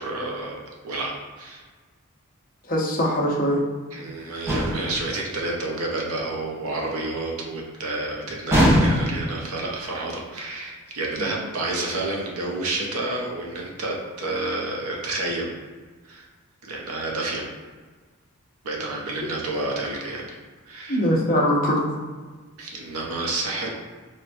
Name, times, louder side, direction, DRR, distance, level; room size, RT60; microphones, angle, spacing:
voice 1, 0.0-1.6 3.9-15.5 16.1-16.3 16.6-17.4 18.6-20.2 20.7-21.0 22.6-23.7, right 2 dB, 80° right, -2 dB, 0.7 m, -29 dB
voice 2, 2.7-3.6 11.2-11.3 20.9-21.9, equal, 40° left, -3 dB, 0.7 m, -22 dB
sound 1, 4.5-5.0 8.5-9.3, equal, 10° right, 0.6 m, -20 dB
4.4 x 2.2 x 2.6 m, 1.4 s
head